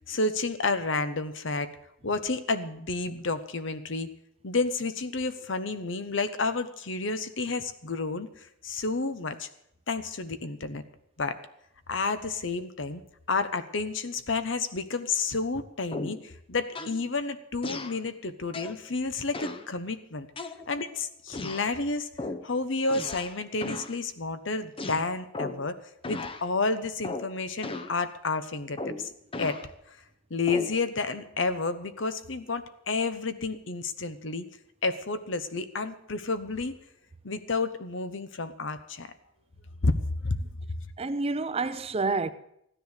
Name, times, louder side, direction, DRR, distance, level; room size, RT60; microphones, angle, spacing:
voice 1, 0.1-1.7 2.0-4.1 4.4-8.3 8.6-9.5 9.9-10.8 11.2-11.4 11.9-13.0 13.3-20.3 20.7-22.1 22.4-25.8 26.1-29.1 29.4-29.6 30.3-34.5 34.8-36.8 37.2-39.1 39.8-39.9 40.2-40.5, left 3 dB, 65° left, 1.0 m, -30 dB
sound 1, 15.9-16.3 16.7-17.0 17.6-18.0 18.5-18.8 19.3-19.7 20.4-20.9 21.3-21.7 22.2-22.5 22.9-23.4 23.6-23.9 24.8-25.7 26.0-26.4 27.0-27.3 27.6-28.0 28.8-29.7 30.5-30.8, left 2 dB, 25° left, 0.7 m, -36 dB
voice 2, 41.0-42.3, right 3 dB, 30° right, 0.5 m, -29 dB
15.5 x 10.0 x 6.6 m
head